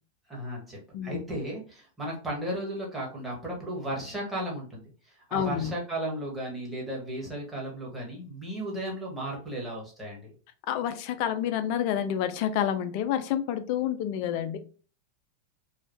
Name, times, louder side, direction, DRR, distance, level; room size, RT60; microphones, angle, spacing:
voice 1, 0.3-10.3, right 1 dB, 5° right, -4 dB, 1.4 m, -35 dB
voice 2, 5.3-5.7 10.7-14.6, left 10 dB, 55° left, 10 dB, 0.3 m, -28 dB
3.2 x 2.2 x 2.7 m, 0.38 s
hypercardioid pair, 110°, 0 cm